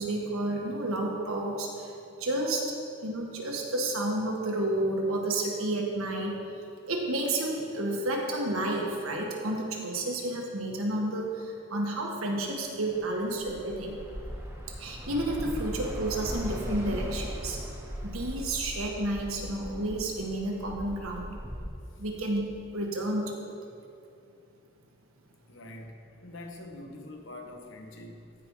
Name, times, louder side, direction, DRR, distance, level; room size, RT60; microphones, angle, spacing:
voice 1, 0.0-2.8 3.0-6.4 6.9-14.0 14.8-17.6 18.0-21.4 22.0-23.5, right 1 dB, 85° right, 0 dB, 1.5 m, -31 dB
Bus / Traffic noise roadway noise, 12.9-21.7, equal, 10° right, 1.0 m, -38 dB
voice 2, 25.5-28.3, left 1 dB, 60° left, 3 dB, 1.0 m, -44 dB
15.0 x 5.2 x 4.7 m, 2.6 s
head